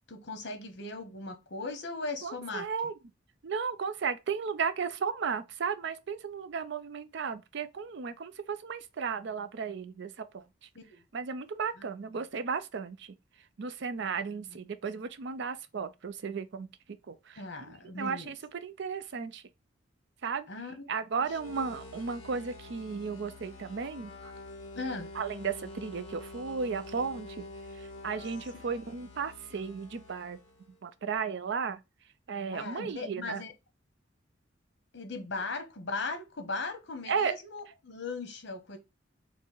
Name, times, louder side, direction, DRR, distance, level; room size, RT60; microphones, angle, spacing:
voice 1, 0.1-2.7 10.7-11.0 11.8-11.9 14.5-14.6 17.4-18.3 20.5-20.9 24.7-25.1 32.5-33.5 34.9-38.8, left 3 dB, 60° left, 1.1 m, -38 dB
voice 2, 2.2-2.9 3.4-10.4 11.1-13.1 13.6-16.7 17.1-19.4 20.2-20.5 20.9-24.3 25.1-27.5 27.7-30.4 30.8-31.8 32.3-33.4 37.1-37.3, right 5 dB, 60° right, 0.4 m, -34 dB
sound 1, 21.2-30.8, left 2 dB, 30° left, 1.6 m, -47 dB
4.5 x 2.0 x 4.4 m
head